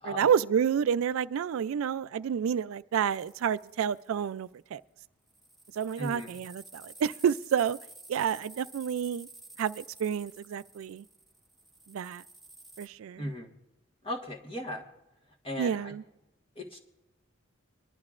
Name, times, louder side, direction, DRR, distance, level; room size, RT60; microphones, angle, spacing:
voice 1, 0.0-4.8 5.8-7.8 8.1-9.3 9.6-11.0 11.9-12.2 12.8-13.2 15.6-16.0, right 8 dB, 75° right, 0.3 m, -29 dB
sound 1, 3.1-4.3 5.3-12.9, right 2 dB, ahead, 0.7 m, -52 dB
voice 2, 6.0-6.3 13.2-13.5 14.0-14.9 15.4-16.0 16.5-16.8, left 1 dB, 25° left, 1.4 m, -37 dB
22.5 x 11.5 x 2.5 m
head